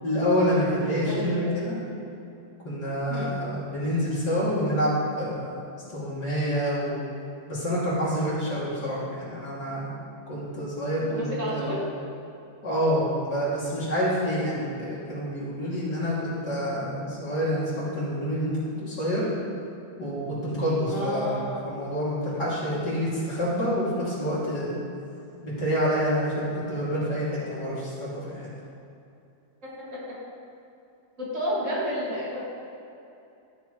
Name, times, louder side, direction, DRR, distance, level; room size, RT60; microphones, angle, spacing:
voice 1, 0.0-1.7 2.6-5.6 5.9-7.0 7.5-10.0 10.3-11.7 12.6-18.5 18.8-19.3 20.0-24.8 25.4-28.5, equal, 70° left, -9 dB, 3.1 m, -27 dB
voice 2, 0.9-1.6 3.1-3.4 11.0-11.8 20.8-21.6 29.6-29.7 31.2-32.4, equal, 45° right, -7 dB, 2.3 m, -31 dB
13.0 x 7.1 x 3.1 m, 2.7 s
omnidirectional pair, 1.8 m